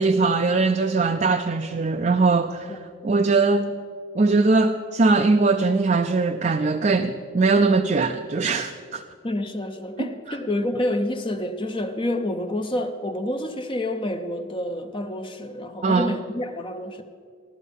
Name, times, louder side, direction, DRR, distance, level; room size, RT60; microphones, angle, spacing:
voice 1, 0.0-2.8 3.0-3.7 4.2-9.0 10.0-10.4 15.8-16.1, right 3 dB, 35° right, 0.4 m, -21 dB
voice 2, 9.2-17.0, left 1 dB, 25° left, 0.6 m, -28 dB
16.0 x 12.0 x 5.4 m
head